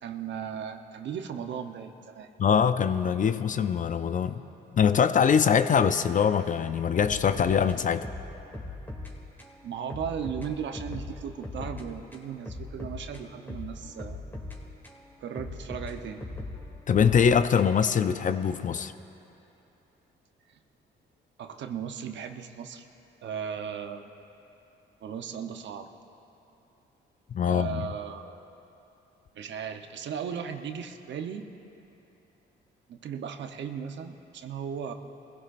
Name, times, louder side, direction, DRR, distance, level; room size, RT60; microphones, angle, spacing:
voice 1, 0.0-2.3 9.6-14.2 15.2-16.3 21.4-22.9 23.2-24.1 25.0-25.9 27.5-28.3 29.3-31.5 32.9-34.9, right 7 dB, 65° right, 6 dB, 0.9 m, -36 dB
voice 2, 2.4-4.4 4.7-8.1 16.9-18.9 27.3-27.9, left 7 dB, 40° left, 11 dB, 0.5 m, -23 dB
sound 1, 7.0-9.1 9.4-9.5 9.9-11.9 12.1-15.0 15.4-17.9, left 2 dB, 10° left, 2.6 m, -40 dB
23.0 x 16.5 x 2.6 m, 3.0 s
cardioid pair, 90°, 20 cm